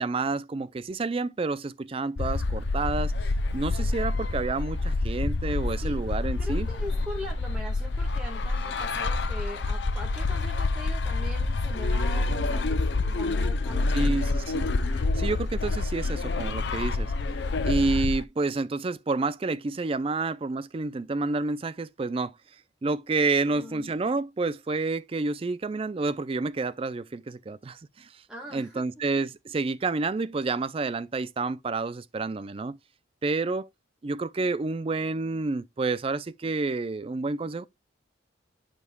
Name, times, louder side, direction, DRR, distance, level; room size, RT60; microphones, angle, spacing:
voice 1, 0.0-3.1 3.5-6.7 13.9-14.7 14.9-17.1 17.6-22.3 22.8-28.2 28.5-32.8 33.2-33.7 34.0-37.7, right 3 dB, 30° right, 0.3 m, -29 dB
sound 1, 2.2-18.2, left 3 dB, 60° left, 0.5 m, -27 dB
voice 2, 6.4-13.9 23.4-23.9 28.3-28.8 29.1-29.2, equal, 5° right, 1.5 m, -41 dB
11.0 x 5.2 x 2.2 m
head